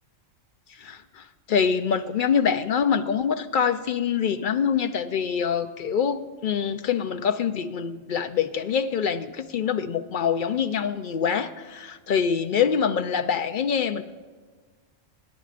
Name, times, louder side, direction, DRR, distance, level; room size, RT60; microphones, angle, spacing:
voice 1, 0.8-14.0, left 7 dB, 60° left, 9 dB, 0.5 m, -25 dB
26.5 x 10.5 x 2.5 m, 1.5 s
omnidirectional pair, 1.3 m